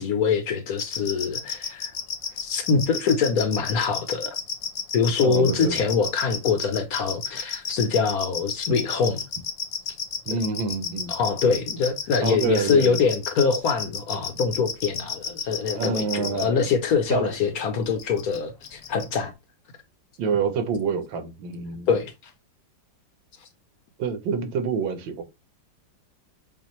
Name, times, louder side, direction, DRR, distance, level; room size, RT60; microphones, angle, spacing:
voice 1, 0.0-1.9 2.4-4.3 4.9-9.2 11.1-19.3 21.9-22.1, left 5 dB, 60° left, 1.0 m, -24 dB
sound 1, 0.8-16.4 17.9-18.4 18.6-19.0, left 7 dB, 85° left, 1.6 m, -31 dB
voice 2, 5.2-5.8 10.3-11.1 12.2-13.0 15.7-16.7 17.1-17.3 20.2-21.9 24.0-25.2, right 5 dB, 85° right, 1.6 m, -27 dB
6.9 x 2.6 x 3.0 m
omnidirectional pair, 2.0 m